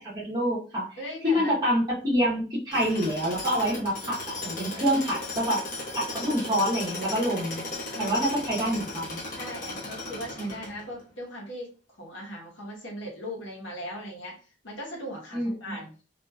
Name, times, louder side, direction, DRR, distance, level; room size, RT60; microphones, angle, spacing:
voice 1, 0.1-1.0 1.2-5.6 5.9-7.6 8.0-9.2 10.4-10.5 15.3-15.7, equal, 20° right, -7 dB, 1.0 m, -27 dB
voice 2, 1.0-1.6 7.9-8.3 9.3-11.7 12.0-15.9, equal, 80° left, -3 dB, 1.0 m, -39 dB
Tools, 2.7-11.0, left 2 dB, 45° left, 1.0 m, -36 dB
2.9 x 2.5 x 2.3 m, 0.37 s
head